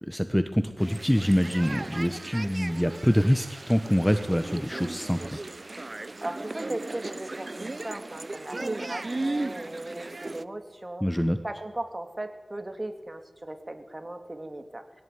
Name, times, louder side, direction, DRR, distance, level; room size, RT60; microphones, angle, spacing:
voice 1, 0.0-5.4 11.0-11.4, equal, 5° left, 9 dB, 1.2 m, -25 dB
sound 1, 0.8-10.4, right 2 dB, 50° right, 0.7 m, -36 dB
voice 2, 6.2-15.0, right 1 dB, 30° right, 6 dB, 3.1 m, -38 dB
22.0 x 17.0 x 9.6 m, 1.2 s
wide cardioid pair, 70°, 0 cm